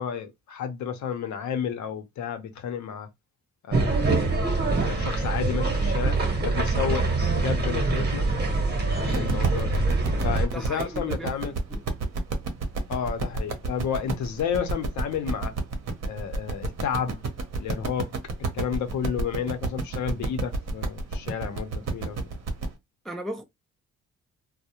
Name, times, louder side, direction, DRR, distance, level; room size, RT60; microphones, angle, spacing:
voice 1, 0.0-3.1 3.6-4.3 4.8-8.3 9.0-9.8 10.2-11.5 12.9-15.6 16.0-17.2 17.6-18.1 18.5-22.2, left 8 dB, 70° left, 0.7 m, -31 dB
sound 1, 3.7-10.5, right 3 dB, 35° right, 0.9 m, -24 dB
sound 2, 9.1-22.7, right 3 dB, 60° right, 0.8 m, -31 dB
voice 2, 10.5-11.8 23.0-23.4, right 1 dB, ahead, 0.4 m, -36 dB
2.3 x 2.1 x 2.8 m
cardioid pair, 90°, 30 cm